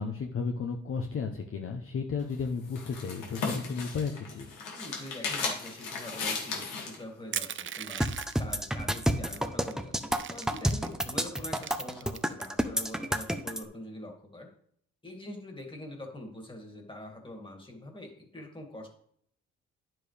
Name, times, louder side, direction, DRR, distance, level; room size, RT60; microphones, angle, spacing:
voice 1, 0.0-4.5, left 5 dB, 45° left, 3 dB, 0.9 m, -33 dB
sound 1, 2.2-7.0, left 4 dB, 90° left, 2.3 m, -36 dB
voice 2, 4.7-8.0 8.4-14.5 15.0-18.9, left 1 dB, 15° left, 2 dB, 2.2 m, -44 dB
Crushing, 7.3-8.5 9.3-9.4 9.7-10.9 11.4-12.5, right 9 dB, 40° right, 0.5 m, -38 dB
sound 2, 8.0-13.6, equal, ahead, 0.7 m, -29 dB
9.9 x 7.4 x 3.4 m, 0.65 s
cardioid pair, 90°, 30 cm